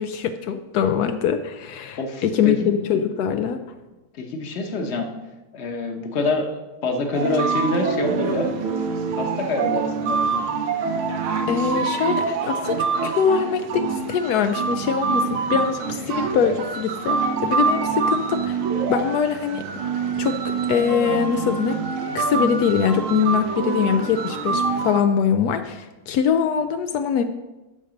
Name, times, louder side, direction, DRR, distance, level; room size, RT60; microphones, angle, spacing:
voice 1, 0.0-3.6 11.5-18.6 18.9-19.6 20.2-20.4 20.7-21.8 22.1-27.2, left 7 dB, 90° left, 8 dB, 0.8 m, -23 dB
voice 2, 2.0-2.8 4.1-5.1 5.5-6.5 6.8-8.5 9.2-10.4, left 2 dB, 45° left, 3 dB, 1.0 m, -26 dB
sound 1, 7.1-25.0, right 5 dB, 90° right, 1.7 m, -25 dB
8.9 x 6.5 x 5.1 m, 1.1 s
omnidirectional pair, 2.2 m